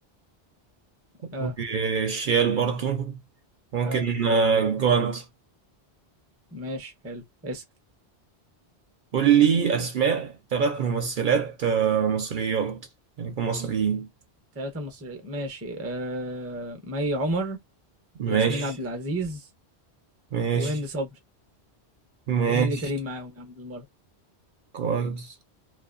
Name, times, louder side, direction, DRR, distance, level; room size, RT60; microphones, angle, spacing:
voice 1, 1.2-3.2 3.7-5.2 9.1-12.8 13.2-14.1 18.2-18.7 20.3-20.8 22.3-22.9 24.7-25.3, right 6 dB, 55° right, 0.7 m, -24 dB
voice 2, 6.5-7.6 14.6-17.6 18.3-19.5 20.5-21.2 22.5-23.8, right 1 dB, 20° right, 0.5 m, -32 dB
2.6 x 2.4 x 2.4 m
omnidirectional pair, 1.1 m